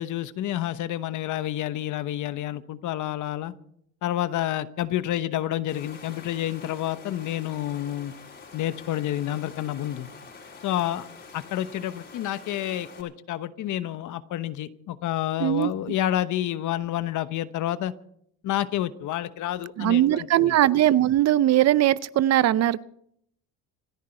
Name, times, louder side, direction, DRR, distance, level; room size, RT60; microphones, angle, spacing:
voice 1, 0.0-3.5 4.0-8.1 8.5-10.1 10.6-11.1 11.3-17.9 18.4-20.5, left 12 dB, 65° left, 1.1 m, -29 dB
Water, 5.7-13.0, left 4 dB, 35° left, 4.1 m, -46 dB
voice 2, 15.4-15.7 19.8-22.8, right 13 dB, 50° right, 0.6 m, -20 dB
27.0 x 10.5 x 4.5 m
cardioid pair, 120°, 32 cm